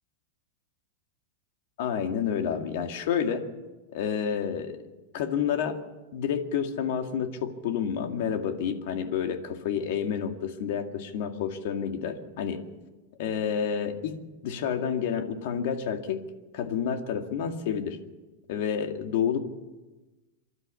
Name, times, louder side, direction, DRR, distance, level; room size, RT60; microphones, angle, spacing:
voice 1, 1.8-3.5 3.9-4.8 5.1-5.8 6.1-12.6 13.2-14.2 14.4-16.2 16.5-18.0 18.5-19.5, left 7 dB, 55° left, 5 dB, 2.1 m, -29 dB
26.5 x 12.5 x 8.3 m, 1.2 s
supercardioid pair, 170°, 0 cm